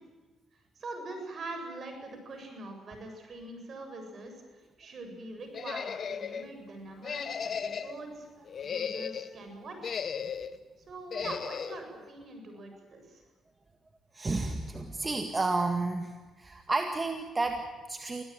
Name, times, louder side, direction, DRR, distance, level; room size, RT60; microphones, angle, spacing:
voice 1, 0.7-8.3 8.6-10.0 10.8-13.2, right 2 dB, 50° right, 5 dB, 7.6 m, -43 dB
sound 1, 5.5-6.5 7.0-8.0 8.5-9.3 9.8-10.6 11.1-11.8, left 7 dB, 50° left, 1.3 m, -35 dB
voice 2, 14.1-16.1 16.4-18.2, right 3 dB, 25° right, 5 dB, 1.9 m, -31 dB
25.0 x 16.5 x 9.2 m, 1.3 s
cardioid pair, 90°, 0 cm